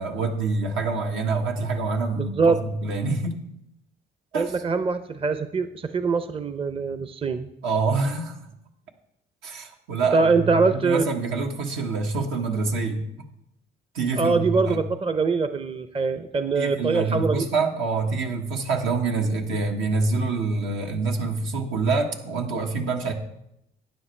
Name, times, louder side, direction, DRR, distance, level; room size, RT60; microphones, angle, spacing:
voice 1, 0.0-3.4 4.3-4.5 7.6-8.4 9.4-13.0 13.9-14.8 16.5-23.1, right 4 dB, 80° right, 2 dB, 1.5 m, -26 dB
voice 2, 2.2-2.6 4.3-7.5 10.1-11.0 14.1-17.5, right 4 dB, 30° right, 10 dB, 0.6 m, -23 dB
12.5 x 9.5 x 3.2 m, 0.80 s
cardioid pair, 90°, 20 cm